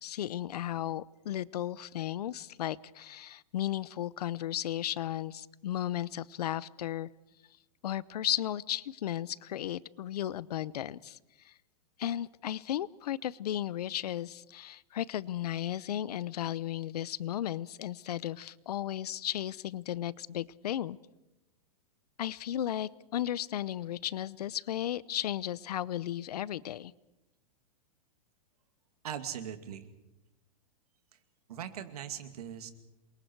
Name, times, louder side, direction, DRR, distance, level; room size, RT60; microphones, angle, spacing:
voice 1, 0.0-7.1 7.8-11.2 11.4-11.5 12.0-21.0 22.2-26.9, left 12 dB, 85° left, 21 dB, 0.7 m, -35 dB
voice 2, 29.0-29.9 31.1-31.2 31.5-32.7, right 9 dB, 70° right, 8 dB, 2.5 m, -40 dB
28.0 x 23.0 x 4.7 m, 0.96 s
supercardioid pair, 175°, 20 cm